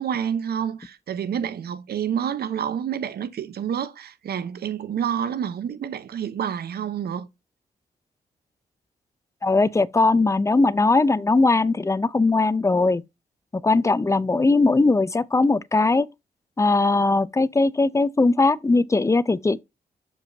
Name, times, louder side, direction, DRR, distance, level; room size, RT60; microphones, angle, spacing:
voice 1, 0.0-7.3, right 8 dB, 85° right, 0.9 m, -28 dB
voice 2, 9.4-13.0 13.5-16.1 16.6-19.6, left 3 dB, 20° left, 0.5 m, -20 dB
7.0 x 5.5 x 2.7 m
cardioid pair, 80°, 16 cm